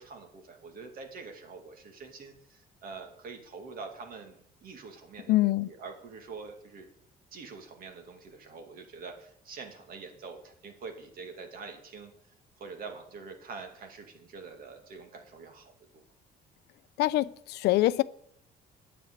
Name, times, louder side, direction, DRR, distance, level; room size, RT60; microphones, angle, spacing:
voice 1, 0.0-6.9 7.3-12.1 12.6-16.0, right 4 dB, 60° right, 2.4 m, -45 dB
voice 2, 5.3-5.7 17.0-18.0, left 16 dB, 75° left, 0.5 m, -24 dB
9.4 x 7.0 x 8.1 m
cardioid pair, 110°, 17 cm